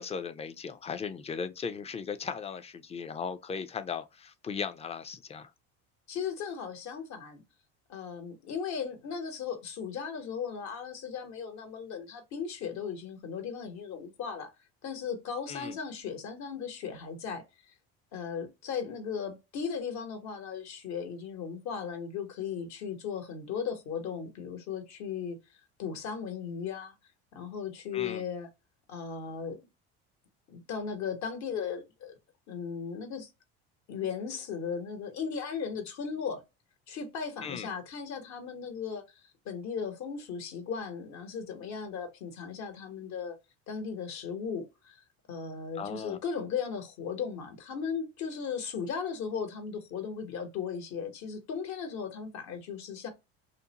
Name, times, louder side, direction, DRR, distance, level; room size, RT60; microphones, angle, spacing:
voice 1, 0.0-5.5 15.5-15.8 27.9-28.2 37.4-37.7 45.8-46.2, left 6 dB, 20° left, 0.4 m, -37 dB
voice 2, 6.1-7.4 7.9-14.5 14.8-17.7 18.1-25.4 25.8-26.9 27.3-28.5 28.9-29.7 30.5-32.1 32.5-33.3 33.9-36.4 36.9-39.0 39.4-43.4 43.7-45.0 45.3-53.1, left 6 dB, 60° left, 1.1 m, -36 dB
2.6 x 2.1 x 2.8 m
supercardioid pair, 95°, 32 cm